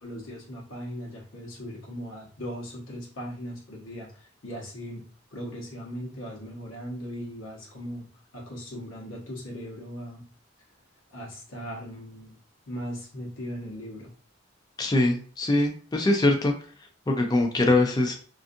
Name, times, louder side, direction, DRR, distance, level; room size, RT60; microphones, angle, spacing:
voice 1, 0.0-5.0 5.3-8.1 8.3-10.2 11.1-12.4 12.7-14.1, equal, 75° left, -2 dB, 0.9 m, -38 dB
voice 2, 14.8-16.5 17.1-18.1, left 2 dB, 20° left, 3 dB, 0.3 m, -22 dB
2.5 x 2.4 x 2.6 m, 0.42 s
head